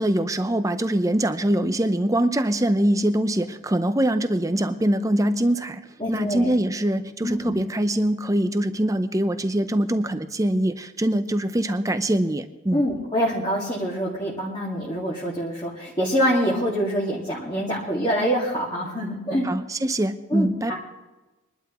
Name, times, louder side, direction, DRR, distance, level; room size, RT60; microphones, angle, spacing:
voice 1, 0.0-5.8 6.1-12.9 19.4-20.8, right 1 dB, 15° right, 10 dB, 0.6 m, -23 dB
voice 2, 6.0-6.5 7.2-7.5 12.7-19.5 20.3-20.8, equal, 20° left, -5 dB, 2.0 m, -25 dB
23.0 x 12.0 x 3.0 m, 1.1 s
head